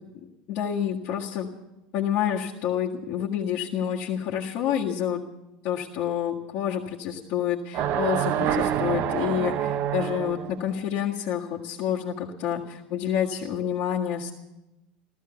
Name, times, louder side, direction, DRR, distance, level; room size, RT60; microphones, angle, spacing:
voice 1, 0.5-1.5 1.9-5.2 5.6-14.3, left 9 dB, 55° left, -6 dB, 1.8 m, -28 dB
sound 1, 7.7-10.6, right 10 dB, 50° right, 0.8 m, -27 dB
14.5 x 14.0 x 6.9 m, 0.97 s
hypercardioid pair, 85°, 4 cm